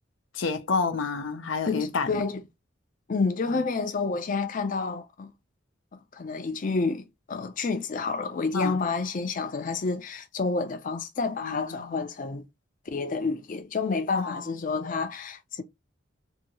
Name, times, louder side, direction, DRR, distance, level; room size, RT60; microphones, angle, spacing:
voice 1, 0.3-2.2 8.5-8.8 11.4-12.1 14.2-14.5, left 4 dB, 90° left, 0.6 m, -29 dB
voice 2, 1.7-2.4 3.1-5.3 5.9-12.4 12.9-15.6, left 4 dB, 45° left, 0.5 m, -29 dB
2.8 x 2.7 x 2.7 m
head